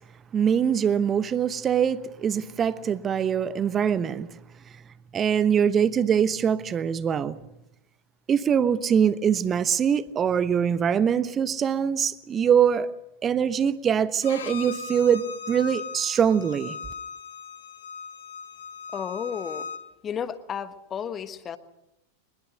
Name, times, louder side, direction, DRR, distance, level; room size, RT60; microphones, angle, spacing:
voice 1, 0.3-4.3 5.1-7.4 8.3-12.9 13.2-16.8, right 8 dB, 25° right, 1.0 m, -23 dB
Bowed string instrument, 14.2-19.8, left 5 dB, 65° left, 2.6 m, -38 dB
voice 2, 18.9-19.7 20.0-21.6, left 8 dB, 25° left, 1.4 m, -32 dB
23.5 x 21.0 x 6.5 m
figure-of-eight pair, 90°, 0 cm